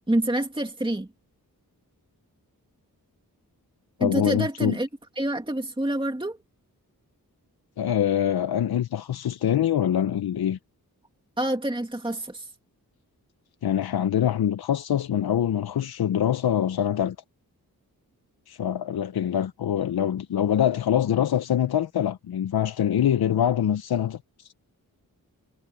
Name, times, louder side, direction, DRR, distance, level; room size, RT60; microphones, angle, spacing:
voice 1, 0.1-1.1 4.0-4.9 5.2-6.4 11.4-12.5, right 1 dB, 15° right, 2.4 m, -27 dB
voice 2, 4.0-4.8 7.8-10.6 13.6-17.2 18.5-24.5, left 10 dB, 90° left, 0.7 m, -24 dB
wide cardioid pair, 75°, 37 cm